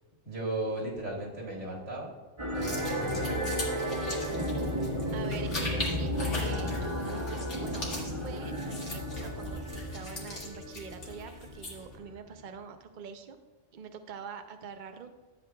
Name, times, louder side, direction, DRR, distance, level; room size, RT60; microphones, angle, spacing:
voice 1, 0.2-2.1 2.5-3.6, right 1 dB, 80° right, -1 dB, 2.1 m, -36 dB
sound 1, 2.4-12.0, equal, 25° right, 1.3 m, -33 dB
sound 2, 2.5-11.9, left 1 dB, 75° left, 2.4 m, -40 dB
voice 2, 5.1-13.4 13.7-15.2, right 6 dB, 50° right, 7 dB, 0.6 m, -45 dB
12.5 x 8.3 x 2.3 m, 1.3 s
omnidirectional pair, 1.2 m